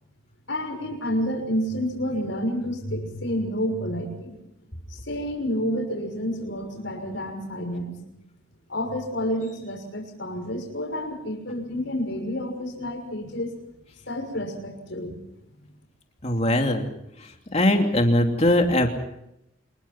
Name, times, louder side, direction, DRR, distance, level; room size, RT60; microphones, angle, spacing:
voice 1, 0.5-4.4 4.9-7.9 8.7-13.6 14.1-15.1, equal, 65° left, 3 dB, 6.3 m, -29 dB
voice 2, 16.2-16.8 17.5-18.9, left 1 dB, 35° left, 3 dB, 2.9 m, -20 dB
26.5 x 21.5 x 6.1 m, 0.82 s
head